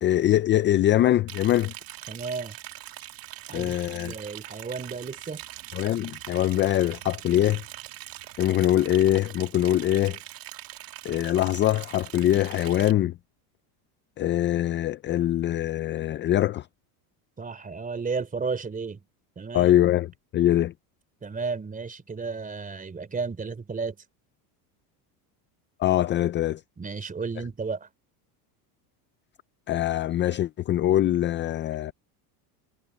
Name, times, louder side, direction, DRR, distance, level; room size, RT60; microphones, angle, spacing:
voice 1, 0.0-1.7 3.5-4.1 5.7-7.6 8.4-10.2 11.0-13.1 14.2-16.7 19.5-20.7 25.8-26.6 29.7-31.9, left 13 dB, 25° left, 0.4 m, -23 dB
Liquid, 1.3-12.9, right 15 dB, 50° right, 2.1 m, -42 dB
voice 2, 2.1-2.6 3.5-5.4 17.4-19.0 19.3-19.7 21.2-24.0 26.8-27.9, right 4 dB, 15° right, 3.5 m, -33 dB
supercardioid pair, 125°, 46 cm